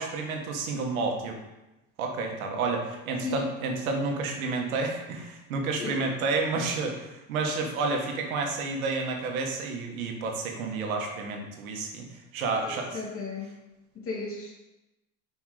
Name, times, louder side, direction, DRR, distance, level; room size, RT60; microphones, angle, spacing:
voice 1, 0.0-1.4 2.0-12.1 12.3-13.0, right 3 dB, 90° right, 2 dB, 1.5 m, -30 dB
voice 2, 3.2-3.5 5.8-6.1 12.5-13.5 13.9-14.5, left 4 dB, 30° left, -3 dB, 2.5 m, -35 dB
5.8 x 5.3 x 4.9 m, 0.97 s
supercardioid pair, 100°, 41 cm